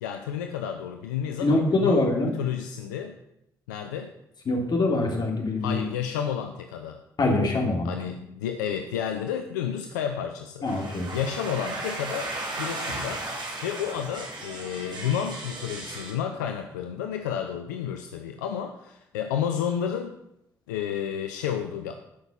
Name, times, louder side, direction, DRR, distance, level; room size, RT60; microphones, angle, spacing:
voice 1, 0.0-3.2 3.7-4.1 5.6-7.0 7.8-10.7 11.1-12.3 12.6-20.2 20.7-21.9, left 8 dB, 85° left, 6 dB, 0.6 m, -31 dB
voice 2, 1.4-2.3 4.5-5.8 7.2-7.9 10.6-11.1, left 2 dB, 50° left, 1 dB, 3.3 m, -24 dB
sound 1, 10.7-16.1, right 2 dB, 55° right, 3.3 m, -35 dB
15.0 x 6.1 x 5.4 m, 0.79 s
hypercardioid pair, 45°, 9 cm